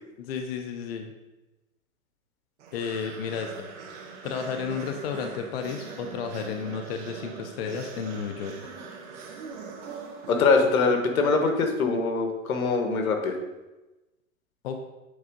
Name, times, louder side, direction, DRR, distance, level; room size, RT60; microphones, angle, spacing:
voice 1, 0.2-1.1 2.7-3.7 4.2-8.5 14.6-14.8, left 6 dB, 45° left, 5 dB, 0.7 m, -32 dB
sound 1, 2.6-11.1, right 5 dB, 60° right, 1.7 m, -42 dB
voice 2, 10.3-13.3, left 4 dB, 85° left, 4 dB, 1.5 m, -23 dB
8.1 x 3.6 x 5.1 m, 1.1 s
hypercardioid pair, 160°, 42 cm